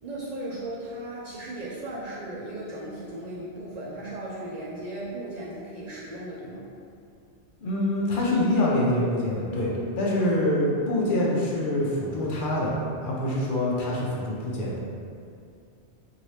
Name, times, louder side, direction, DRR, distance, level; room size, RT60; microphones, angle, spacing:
voice 1, 0.0-6.7, right 1 dB, 60° right, -8 dB, 0.4 m, -36 dB
voice 2, 7.6-12.7 13.0-14.8, left 1 dB, 55° left, -5 dB, 0.7 m, -25 dB
2.8 x 2.7 x 3.1 m, 2.4 s
omnidirectional pair, 1.2 m